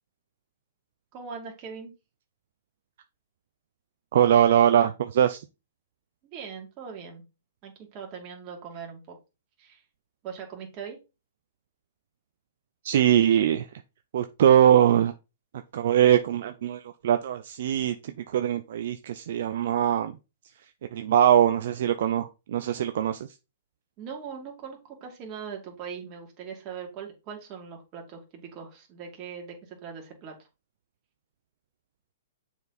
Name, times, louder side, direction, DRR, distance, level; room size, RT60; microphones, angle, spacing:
voice 1, 1.1-1.9 6.3-7.2 7.6-9.2 9.6-9.8 10.2-11.0 24.0-30.4, right 6 dB, 35° right, 1 dB, 2.5 m, -40 dB
voice 2, 4.1-5.4 12.8-13.7 14.1-15.1 15.7-20.1 20.9-23.3, right 10 dB, 65° right, 8 dB, 0.6 m, -22 dB
6.8 x 4.5 x 4.1 m, 0.28 s
hypercardioid pair, 140°, 0 cm